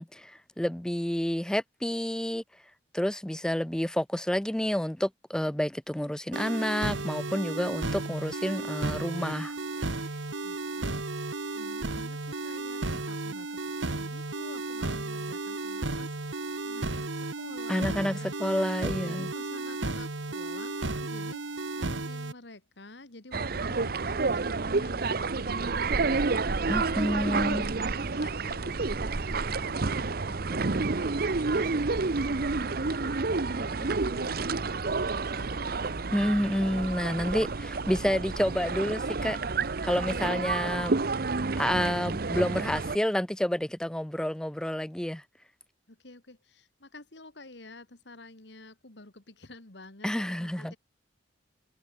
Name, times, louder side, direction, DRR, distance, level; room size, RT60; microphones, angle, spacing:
voice 1, 0.0-2.4 2.9-9.6 17.7-19.3 26.7-27.7 36.1-39.4 39.8-41.0 41.5-45.2 50.0-50.7, equal, 5° left, 0.3 m, -29 dB
sound 1, 6.3-22.3, right 2 dB, 85° right, 2.0 m, -34 dB
voice 2, 10.4-11.0 11.3-18.3 19.0-26.3 27.0-31.8 32.6-35.8 36.4-37.3 45.9-50.8, left 2 dB, 65° left, 2.2 m, -50 dB
sound 2, 23.3-43.0, right 3 dB, 55° right, 0.8 m, -29 dB
head